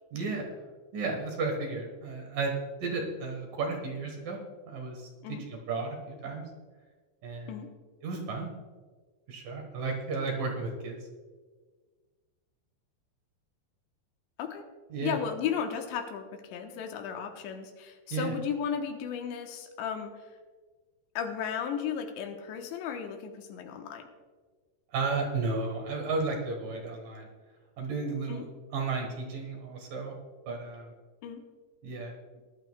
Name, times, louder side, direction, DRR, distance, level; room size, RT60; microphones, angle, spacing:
voice 1, 0.1-2.5 2.8-4.4 4.7-5.1 5.5-6.4 7.2-7.6 8.0-8.5 9.3-11.0 14.9-15.2 18.1-18.3 24.9-27.3 27.8-28.4 28.7-30.1 30.5-30.9 31.8-32.1, right 4 dB, 60° right, 2 dB, 2.6 m, -33 dB
voice 2, 15.0-20.1 21.2-24.1 28.3-28.4 31.2-31.4, left 8 dB, 85° left, 4 dB, 3.2 m, -35 dB
20.5 x 11.5 x 2.3 m, 1.4 s
omnidirectional pair, 5.0 m